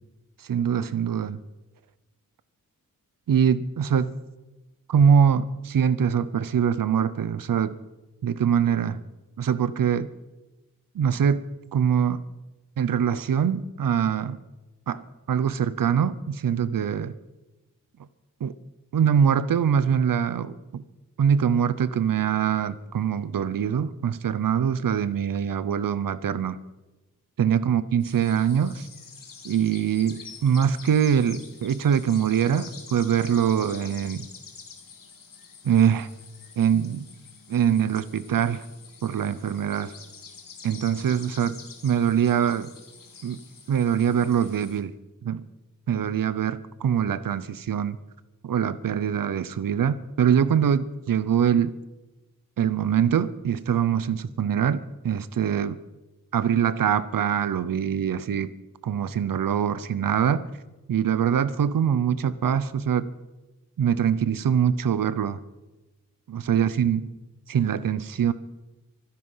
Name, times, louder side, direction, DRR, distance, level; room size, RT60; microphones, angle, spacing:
voice 1, 0.4-1.4 3.3-4.1 4.9-7.8 8.2-9.0 9.4-10.1 10.9-11.5 11.7-12.2 12.8-14.4 14.9-17.1 18.4-18.5 18.9-20.8 21.2-26.6 27.4-28.9 29.4-34.3 35.6-36.1 36.6-37.1 37.5-38.6 39.0-39.9 40.6-42.7 43.2-43.4 43.7-44.9 45.2-45.4 45.9-48.0 48.4-51.8 52.6-55.8 56.3-58.5 58.8-60.5 60.9-63.1 63.8-65.4 66.3-67.1 67.5-68.3, right 8 dB, 80° right, 16 dB, 0.8 m, -23 dB
sound 1, 28.0-44.8, left 5 dB, 80° left, 2.6 m, -47 dB
24.5 x 10.0 x 5.7 m, 1.1 s
wide cardioid pair, 155°, 33 cm